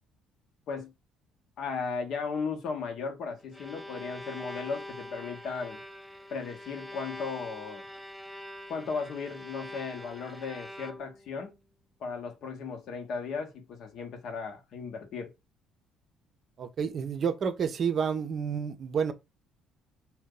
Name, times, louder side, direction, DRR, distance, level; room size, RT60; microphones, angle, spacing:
voice 1, 1.6-5.8 6.3-7.9 8.7-11.5 12.0-15.3, left 5 dB, 60° left, 0.8 m, -36 dB
Bowed string instrument, 3.4-11.3, left 1 dB, ahead, 0.5 m, -44 dB
voice 2, 16.6-19.1, right 6 dB, 50° right, 0.5 m, -29 dB
2.6 x 2.1 x 3.7 m
hypercardioid pair, 55°, 0 cm